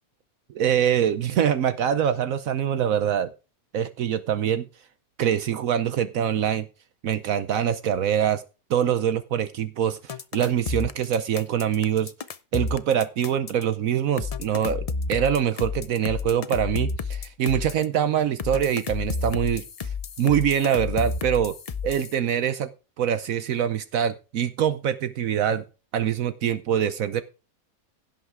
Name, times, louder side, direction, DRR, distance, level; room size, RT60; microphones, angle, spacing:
voice 1, 0.5-3.3 3.7-4.7 5.2-6.7 7.0-8.4 8.7-12.1 12.5-19.6 20.2-21.5 21.8-22.7 23.0-25.6 25.9-27.2, right 9 dB, 70° right, 12 dB, 1.1 m, -24 dB
sound 1, 10.1-13.6 14.2-17.8 18.4-22.1, left 4 dB, 55° left, 0.4 m, -31 dB
16.5 x 5.8 x 4.7 m, 0.31 s
omnidirectional pair, 1.5 m